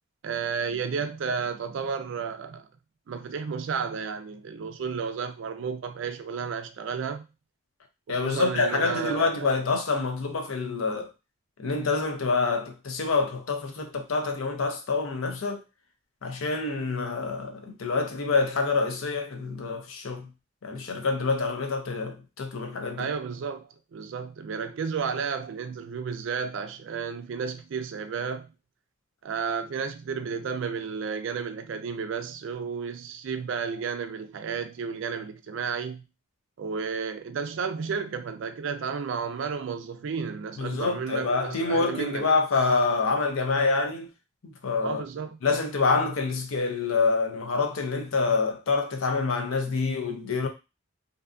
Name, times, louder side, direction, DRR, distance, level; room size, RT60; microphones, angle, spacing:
voice 1, 0.2-2.7 3.1-7.2 8.1-9.5 23.0-28.5 29.2-36.0 36.6-42.2 44.8-45.4, right 6 dB, 65° right, 0.3 m, -32 dB
voice 2, 8.1-11.1 11.6-15.6 16.2-20.3 20.6-23.1 40.6-44.1 44.6-45.0 45.4-50.5, left 4 dB, 75° left, 0.5 m, -26 dB
2.6 x 2.3 x 2.4 m
head